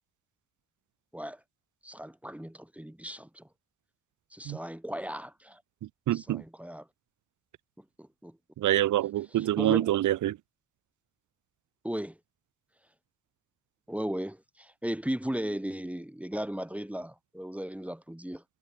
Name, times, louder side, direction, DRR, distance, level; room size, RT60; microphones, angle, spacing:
voice 1, 1.8-3.5 4.3-5.6 6.1-6.9 7.8-8.4 9.4-9.9 11.8-12.2 13.9-18.4, equal, 5° right, 2.4 m, -36 dB
voice 2, 6.1-6.4 8.6-10.4, right 14 dB, 75° right, 1.7 m, -26 dB
cardioid pair, 90°, 30 cm